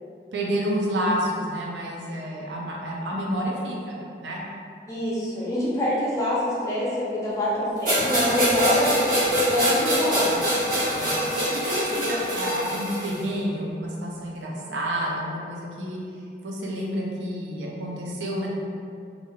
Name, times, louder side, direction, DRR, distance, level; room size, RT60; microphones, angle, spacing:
voice 1, 0.3-4.4 10.9-16.0 16.4-18.5, equal, 85° right, -3 dB, 0.5 m, -29 dB
voice 2, 4.9-9.0 9.5-10.3, left 1 dB, 20° left, -8 dB, 0.6 m, -26 dB
sound 1, 7.8-13.2, equal, 45° right, 1.2 m, -24 dB
3.0 x 2.5 x 2.3 m, 2.4 s
head